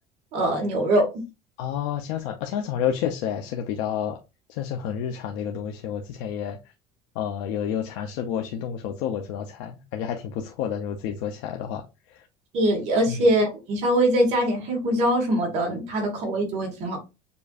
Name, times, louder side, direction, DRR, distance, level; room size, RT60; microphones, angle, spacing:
voice 1, 0.3-1.1 12.5-17.0, right 1 dB, 45° right, 1 dB, 1.6 m, -22 dB
voice 2, 1.6-4.2 4.5-6.6 7.1-12.3 13.1-13.3, left 9 dB, 80° left, 3 dB, 0.6 m, -30 dB
6.8 x 2.6 x 2.4 m, 0.26 s
cardioid pair, 175°, 15 cm